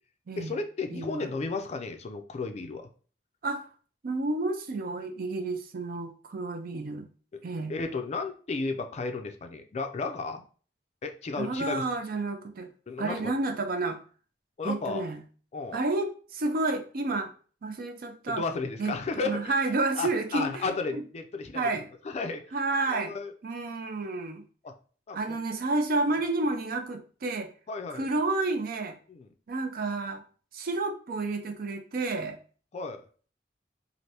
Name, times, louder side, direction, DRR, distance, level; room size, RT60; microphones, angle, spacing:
voice 1, 0.4-2.9 7.7-10.4 11.0-11.9 12.9-13.3 14.6-15.0 15.5-15.8 18.3-19.6 20.0-21.7 22.0-22.4 22.9-23.3 24.6-24.7 25.1-25.4 27.7-28.1 29.1-29.3 32.7-33.0, left 3 dB, 40° left, 7 dB, 0.4 m, -33 dB
voice 2, 0.9-1.3 3.4-3.6 4.0-7.1 7.4-7.7 11.4-12.7 13.0-14.0 14.6-15.2 15.7-17.3 17.6-18.4 18.8-21.0 21.5-21.9 22.5-23.1 23.4-24.4 25.1-27.5 27.9-29.0 29.5-30.2 30.5-32.4, right 3 dB, 55° right, 7 dB, 0.5 m, -30 dB
3.3 x 2.5 x 2.7 m, 0.41 s
head